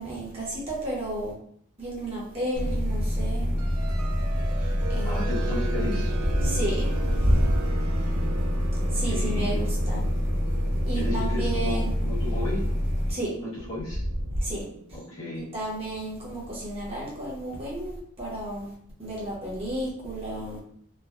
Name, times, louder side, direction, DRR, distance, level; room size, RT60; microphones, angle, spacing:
voice 1, 0.0-1.3 1.8-3.5 4.9-5.3 6.4-7.6 8.9-10.1 10.9-11.9 13.1-13.3 14.3-14.6 15.4-18.7 19.0-20.6, right 1 dB, 25° right, -6 dB, 0.9 m, -30 dB
sound 1, 2.6-13.1, equal, 50° left, 0.8 m, -26 dB
sound 2, 3.6-16.1, right 3 dB, 90° right, 0.4 m, -39 dB
voice 2, 4.6-6.1 8.7-9.7 10.9-12.6 13.4-14.0 14.9-15.5, left 2 dB, 65° left, -7 dB, 1.2 m, -34 dB
3.2 x 2.2 x 2.4 m, 0.64 s
head